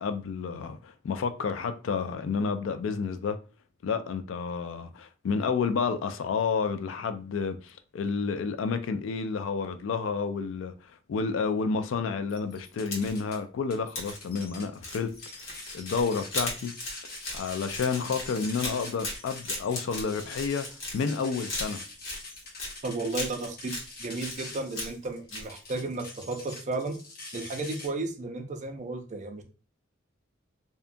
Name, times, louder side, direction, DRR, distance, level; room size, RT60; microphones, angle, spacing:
voice 1, 0.0-3.4 3.8-15.1 15.7-16.7 17.3-20.7 20.9-21.8, left 5 dB, 70° left, 0.3 m, -30 dB
sound 1, 12.3-13.4 13.7-27.9, left 2 dB, 55° left, 0.9 m, -44 dB
sound 2, 12.7-13.3 14.0-14.2 14.8-21.2 21.5-22.8 23.1-23.9 24.2-25.0 25.3-25.5, left 2 dB, 90° left, 1.0 m, -37 dB
voice 2, 22.8-23.7 24.0-27.0 27.3-29.4, right 3 dB, 40° right, 0.5 m, -33 dB
2.7 x 2.2 x 2.5 m
head